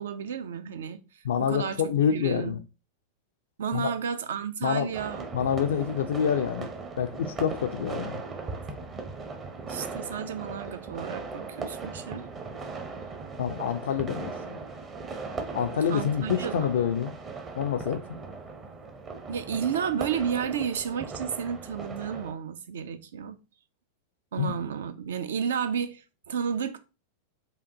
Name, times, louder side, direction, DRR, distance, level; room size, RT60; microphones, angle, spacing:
voice 1, 0.0-2.6 3.6-5.3 9.7-12.3 15.9-16.6 19.3-23.4 24.3-26.8, right 7 dB, 60° right, 0.4 m, -32 dB
voice 2, 1.2-2.6 3.7-3.9 4.6-4.9 5.3-6.7 7.0-8.2 13.4-14.6 15.5-17.1 17.6-18.0 24.4-24.5, left 8 dB, 60° left, 0.3 m, -27 dB
sound 1, 4.9-22.3, right 4 dB, 25° right, 0.7 m, -38 dB
5.0 x 2.3 x 2.7 m
figure-of-eight pair, 90°, 0 cm